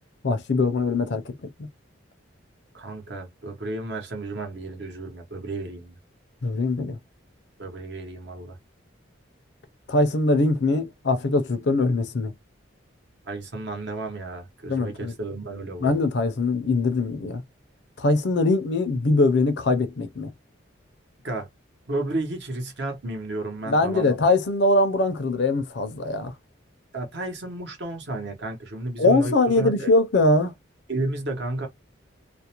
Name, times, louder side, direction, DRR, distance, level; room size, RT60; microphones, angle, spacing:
voice 1, 0.2-1.3 6.4-7.0 9.9-12.3 14.7-15.1 15.8-17.4 18.0-20.3 23.7-26.3 29.0-30.5, left 2 dB, 60° left, 0.5 m, -22 dB
voice 2, 2.7-6.0 7.6-8.6 13.2-15.9 21.2-21.5 21.9-24.2 26.9-29.9 30.9-31.7, right 2 dB, 60° right, 0.9 m, -32 dB
2.4 x 2.1 x 2.8 m
head